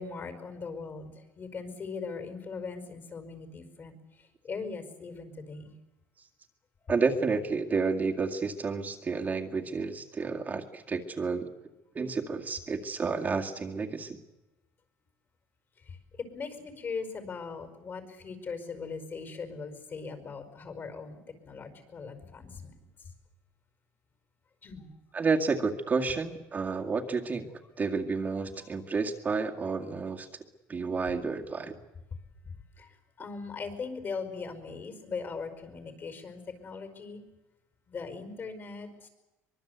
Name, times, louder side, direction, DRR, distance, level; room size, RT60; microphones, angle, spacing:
voice 1, 0.0-3.9 4.4-5.8 6.8-6.9 15.9-16.0 16.3-21.2 21.4-22.7 24.6-24.9 32.8-32.9 33.2-37.2 37.9-39.1, left 4 dB, 40° left, 8 dB, 5.1 m, -39 dB
voice 2, 6.9-11.5 11.9-14.2 25.1-27.5 27.8-30.3 30.7-31.8, right 4 dB, 30° right, 2 dB, 2.1 m, -30 dB
24.0 x 22.0 x 8.2 m, 0.99 s
cardioid pair, 120°, 5 cm